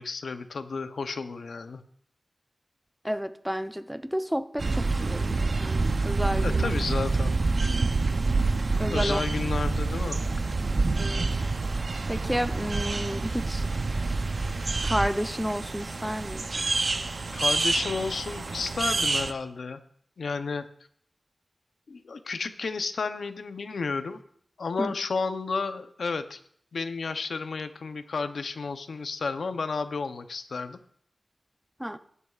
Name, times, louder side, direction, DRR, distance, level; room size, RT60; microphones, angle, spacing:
voice 1, 0.0-1.8 6.4-7.3 8.9-10.2 17.3-19.8 20.2-20.7 21.9-24.2 24.6-26.4 26.7-30.8, left 4 dB, 85° left, 9 dB, 0.7 m, -32 dB
voice 2, 3.0-6.7 8.8-9.2 11.0-11.2 12.1-13.7 14.8-16.5 24.8-24.9 31.8-32.0, equal, 5° right, 9 dB, 0.6 m, -31 dB
sound 1, 4.6-19.3, right 3 dB, 50° right, 0.6 m, -27 dB
13.5 x 11.0 x 2.4 m, 0.65 s
wide cardioid pair, 105°, 0 cm